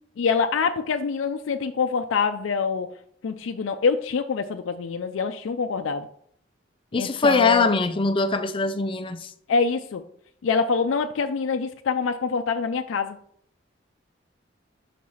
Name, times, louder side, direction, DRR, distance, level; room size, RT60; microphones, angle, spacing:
voice 1, 0.2-2.9 3.2-6.1 6.9-7.7 9.5-10.0 10.4-13.2, left 5 dB, 90° left, 0.4 m, -25 dB
voice 2, 6.9-9.3, left 3 dB, 25° left, 0.4 m, -22 dB
5.8 x 4.7 x 5.5 m
head